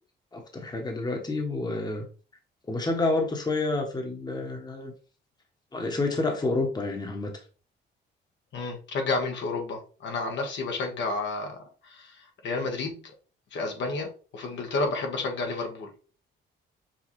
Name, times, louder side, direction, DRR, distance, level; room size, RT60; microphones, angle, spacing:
voice 1, 0.3-2.1 2.7-4.9 5.7-7.3, left 2 dB, 20° left, 1.1 m, -29 dB
voice 2, 8.5-13.0 13.5-15.9, left 3 dB, 65° left, 1.2 m, -31 dB
6.2 x 2.4 x 3.0 m
cardioid pair, 90°, 20 cm